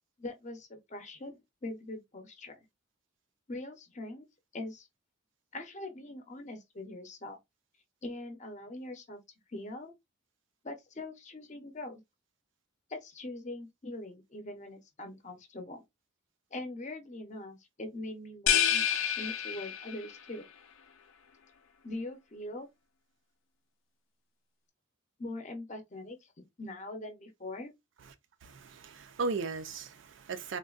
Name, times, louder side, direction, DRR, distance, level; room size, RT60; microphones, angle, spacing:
voice 1, 0.2-2.6 3.5-4.2 4.5-4.9 5.5-7.4 8.0-9.2 9.5-9.9 10.6-12.0 12.9-15.8 16.5-20.5 21.8-22.7 25.2-27.7, left 2 dB, 35° left, 0.7 m, -42 dB
sound 1, 18.5-20.2, left 9 dB, 75° left, 0.4 m, -28 dB
voice 2, 28.4-30.6, right 4 dB, 65° right, 0.4 m, -36 dB
3.6 x 2.2 x 2.4 m
head